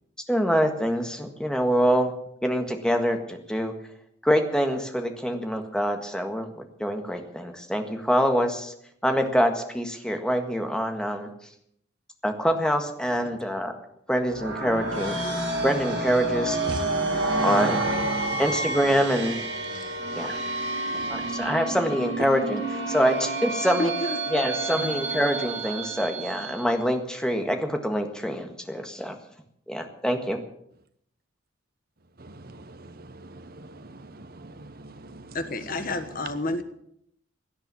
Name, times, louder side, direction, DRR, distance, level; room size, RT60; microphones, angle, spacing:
voice 1, 0.3-2.1 2.4-3.7 4.2-8.7 9.0-11.3 12.2-13.7 14.1-15.2 15.6-16.6 17.4-17.8 18.4-19.4 20.1-20.4 21.1-23.9 24.3-29.1 29.7-30.4, equal, 5° left, 5 dB, 1.6 m, -25 dB
sound 1, 14.2-26.8, right 2 dB, 70° right, 7.4 m, -29 dB
voice 2, 20.9-21.3 32.2-32.9 33.3-35.3, right 2 dB, 50° right, 11 dB, 1.1 m, -42 dB
voice 3, 23.8-24.5 24.8-24.9 35.3-36.6, left 2 dB, 45° left, 9 dB, 1.3 m, -30 dB
17.0 x 10.5 x 7.0 m, 0.71 s
head